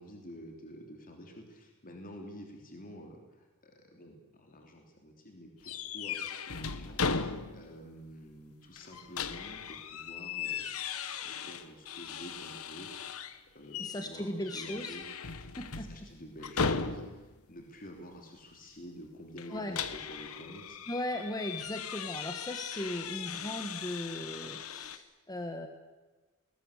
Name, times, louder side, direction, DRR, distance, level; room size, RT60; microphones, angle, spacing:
voice 1, 0.0-6.2 6.5-10.9 11.2-12.9 13.5-15.1 15.8-20.8, equal, 40° left, 2 dB, 3.2 m, -49 dB
sound 1, 5.6-7.8 8.1-8.2 8.8-13.4 13.7-14.0 14.4-17.3 19.4-25.0, left 5 dB, 70° left, 1.3 m, -37 dB
voice 2, 13.8-15.0 15.6-15.9 19.5-19.8 20.9-25.7, left 1 dB, 15° left, 5 dB, 1.5 m, -37 dB
21.0 x 19.0 x 8.3 m, 1.2 s
head